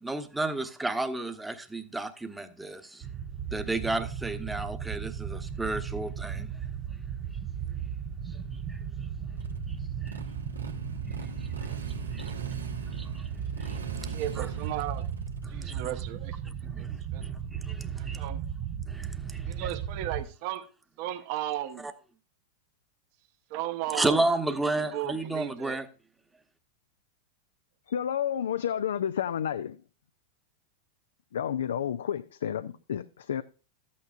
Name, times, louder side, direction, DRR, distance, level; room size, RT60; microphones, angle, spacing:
voice 1, 0.0-3.0 3.5-6.5 8.7-8.8 9.7-9.8 10.0-10.2 11.4-11.5 12.1-12.3 12.9-13.3 13.6-13.8 14.4-14.5 15.4-15.8 16.7-17.0 17.2-18.2 18.9-19.7 21.8-21.9 23.9-25.9, right 2 dB, 5° right, 1.0 m, -32 dB
sound 1, 3.0-20.2, right 8 dB, 35° right, 0.7 m, -36 dB
Motorcycle, 9.4-18.0, right 2 dB, 85° right, 1.3 m, -44 dB
voice 2, 14.1-15.0 15.5-16.9 17.1-17.2 18.0-18.4 19.5-20.6 21.0-21.9 23.5-24.2 24.7-25.8, right 13 dB, 50° right, 1.0 m, -35 dB
voice 3, 27.9-29.8 31.3-33.4, left 9 dB, 70° left, 0.4 m, -30 dB
13.0 x 8.5 x 2.5 m
figure-of-eight pair, 95°, 0 cm